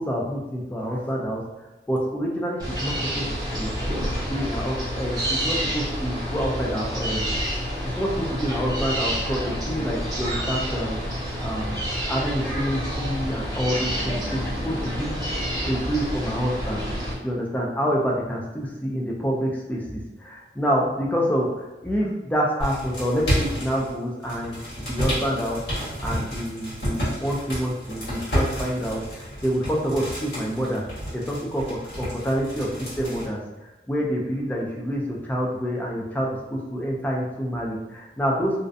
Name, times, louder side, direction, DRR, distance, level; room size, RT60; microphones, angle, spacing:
voice 1, 0.0-1.4 1.9-3.3 3.5-3.7 4.2-7.3 7.8-11.0 11.4-11.8 12.1-15.2 15.6-16.9 17.2-25.6 26.0-30.8 31.1-33.4 33.9-38.6, equal, 10° left, -2 dB, 0.3 m, -27 dB
sound 1, 2.6-17.1, equal, 20° right, 0.7 m, -28 dB
sound 2, 22.6-23.9 24.2-33.3, equal, 75° left, 1.1 m, -30 dB
2.4 x 2.1 x 2.5 m, 1.0 s
head